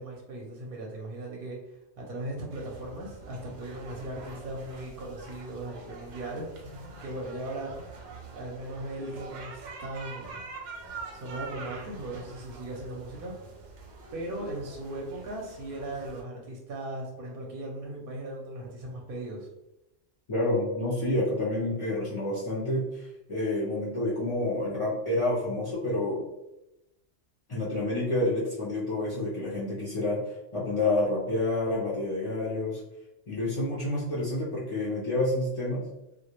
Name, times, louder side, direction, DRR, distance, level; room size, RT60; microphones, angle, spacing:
voice 1, 0.0-7.7 8.3-10.4 11.1-13.3 14.1-19.5, right 1 dB, 60° right, -1 dB, 0.6 m, -38 dB
sound 1, 2.5-16.2, right 3 dB, 90° right, 0.9 m, -45 dB
voice 2, 20.3-26.3 27.5-30.2 30.5-32.8 33.3-35.9, left 1 dB, 55° left, -8 dB, 0.3 m, -28 dB
2.3 x 2.1 x 2.9 m, 0.91 s
omnidirectional pair, 1.3 m